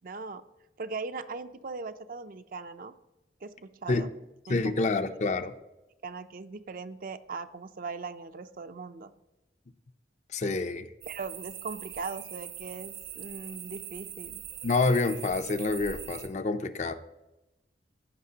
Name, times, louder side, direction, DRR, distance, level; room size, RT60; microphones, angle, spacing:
voice 1, 0.0-0.4 0.8-2.9 3.4-4.1 4.5-4.7 6.0-9.1 11.1-14.4 16.8-16.9, right 4 dB, 50° right, 10 dB, 0.5 m, -39 dB
voice 2, 4.5-5.5 10.3-10.9 14.6-16.9, left 3 dB, 40° left, 10 dB, 0.5 m, -27 dB
sound 1, 11.0-16.3, right 10 dB, 65° right, 1.1 m, -42 dB
15.0 x 5.8 x 2.8 m, 0.99 s
head